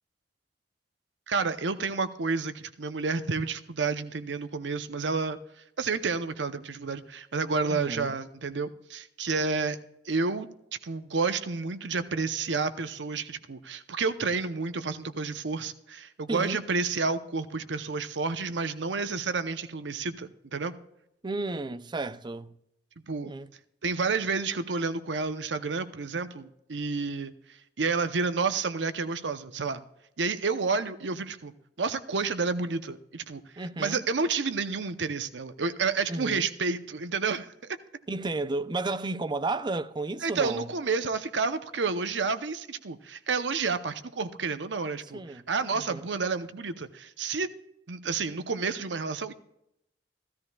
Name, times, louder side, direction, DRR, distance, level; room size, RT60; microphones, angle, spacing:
voice 1, 1.3-5.4 5.8-9.8 10.1-10.5 10.8-20.7 23.1-23.3 23.8-27.3 27.8-29.8 30.2-31.5 31.8-37.8 40.2-45.2 45.5-47.5 47.9-49.3, right 4 dB, 85° right, 0.8 m, -30 dB
voice 2, 7.7-8.1 16.3-16.6 21.2-22.6 23.2-23.5 33.6-34.0 36.1-36.5 38.1-40.7 45.1-45.4 45.7-46.0, right 2 dB, 25° right, 0.5 m, -32 dB
15.5 x 13.5 x 2.3 m
head